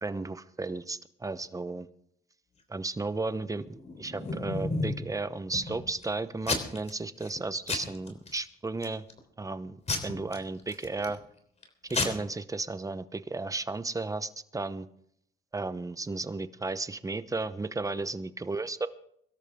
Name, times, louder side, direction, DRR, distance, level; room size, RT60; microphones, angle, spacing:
voice 1, 0.0-1.9 2.7-9.0 9.4-9.8 10.0-11.2 11.9-14.9 15.5-18.9, right 3 dB, 15° right, 13 dB, 0.9 m, -34 dB
Packing tape duct tape / Tearing, 3.7-5.1 5.5-6.0 6.4-6.9 7.2-7.4 7.7-8.4 8.8-9.2 9.9-11.2 11.6-11.7 11.9-12.1, left 3 dB, 35° left, 3.4 m, -32 dB
22.5 x 13.0 x 3.7 m, 0.69 s
cardioid pair, 90°, 20 cm